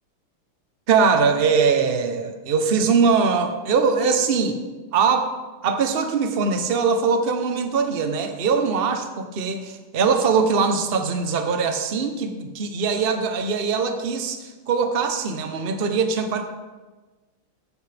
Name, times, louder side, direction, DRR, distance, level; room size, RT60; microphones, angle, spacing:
voice 1, 0.9-4.6 4.9-5.3 5.6-16.4, right 5 dB, 70° right, 6 dB, 0.5 m, -21 dB
14.0 x 9.5 x 3.4 m, 1.2 s
omnidirectional pair, 2.4 m